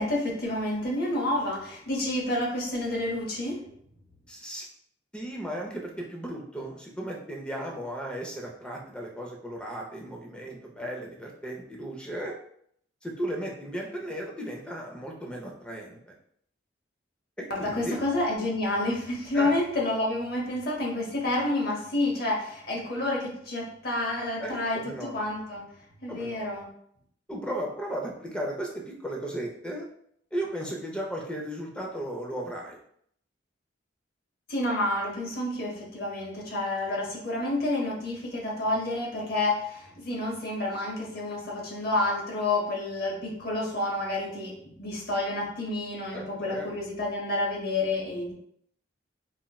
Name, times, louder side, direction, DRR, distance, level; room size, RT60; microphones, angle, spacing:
voice 1, 0.0-3.6 17.5-25.6 26.0-26.7 34.5-48.3, left 2 dB, 50° left, -2 dB, 0.8 m, -29 dB
voice 2, 4.3-4.7 5.1-12.3 13.0-16.1 17.4-18.0 19.3-19.5 24.4-25.2 26.1-26.4 27.3-29.9 30.3-32.8 46.1-46.7, right 1 dB, 5° left, 0 dB, 0.4 m, -35 dB
4.0 x 2.1 x 2.2 m, 0.68 s
head